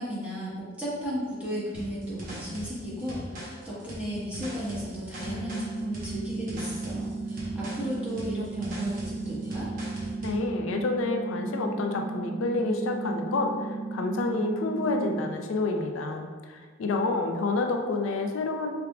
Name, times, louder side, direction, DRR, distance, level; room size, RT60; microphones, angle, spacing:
voice 1, 0.0-9.7, equal, 5° right, -10 dB, 1.3 m, -35 dB
sound 1, 1.7-10.4, right 1 dB, 45° right, 1.0 m, -41 dB
sound 2, 5.2-15.2, right 3 dB, 40° left, 0.8 m, -35 dB
voice 2, 10.2-18.7, left 3 dB, 90° left, 4 dB, 0.4 m, -29 dB
4.7 x 3.5 x 2.3 m, 1.5 s
head